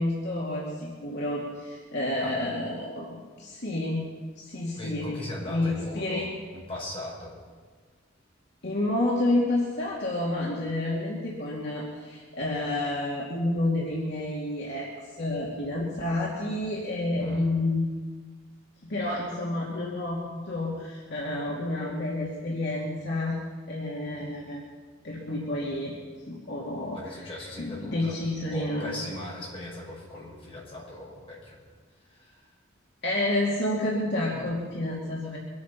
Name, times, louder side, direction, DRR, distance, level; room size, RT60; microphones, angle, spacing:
voice 1, 0.0-4.0 4.4-5.1 5.5-6.3 8.6-14.9 15.2-17.8 18.9-23.4 23.7-24.6 25.0-25.9 26.3-29.0 33.0-35.4, left 1 dB, 60° left, -4 dB, 2.5 m, -29 dB
voice 2, 4.7-7.4 17.2-17.5 26.9-28.2 28.5-31.6 32.1-32.5, left 1 dB, 30° left, -5 dB, 5.9 m, -39 dB
24.0 x 9.3 x 5.9 m, 1.5 s
head